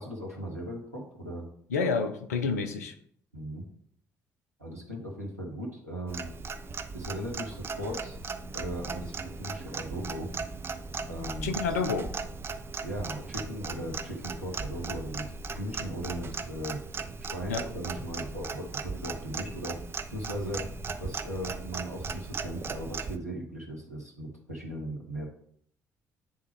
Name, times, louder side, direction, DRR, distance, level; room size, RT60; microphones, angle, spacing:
voice 1, 0.0-1.5 3.3-3.6 4.6-6.3 6.9-8.2 8.5-10.4 11.1-11.6 12.8-16.8 17.2-19.8 20.1-20.6 21.0-25.3, equal, 90° right, -2 dB, 1.0 m, -37 dB
voice 2, 1.7-2.9 11.4-12.1 17.5-17.7, left 4 dB, 75° left, 7 dB, 0.6 m, -29 dB
Clock, 6.1-23.2, right 4 dB, 30° right, 0.6 m, -38 dB
9.6 x 3.6 x 3.2 m, 0.62 s
figure-of-eight pair, 45°, 8 cm